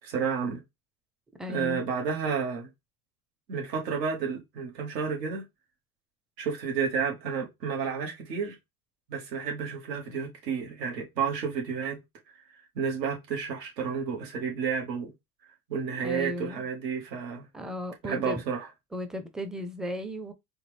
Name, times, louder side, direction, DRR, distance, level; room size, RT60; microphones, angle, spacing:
voice 1, 0.0-0.6 1.5-2.7 3.5-5.4 6.4-8.6 9.1-12.0 12.7-15.1 15.7-17.4 18.0-18.7, right 6 dB, 90° right, 1.7 m, -31 dB
voice 2, 1.4-1.9 16.0-16.7 17.5-18.4 18.9-20.3, equal, ahead, 0.4 m, -35 dB
4.3 x 2.4 x 3.3 m
supercardioid pair, 100°, 49 cm